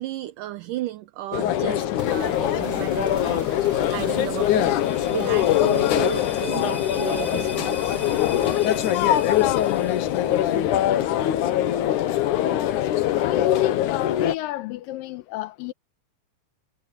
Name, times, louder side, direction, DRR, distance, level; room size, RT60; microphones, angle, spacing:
voice 1, 0.0-3.5 3.9-8.0, right 14 dB, 75° right, 2.4 m, -33 dB
sound 1, 1.3-14.3, left 12 dB, 70° left, 2.3 m, -22 dB
sound 2, 2.0-13.3, right 3 dB, 25° right, 3.0 m, -41 dB
sound 3, 4.0-11.0, left 5 dB, 10° left, 4.9 m, -40 dB
voice 2, 13.1-15.7, left 15 dB, 85° left, 2.5 m, -31 dB
omnidirectional pair, 4.0 m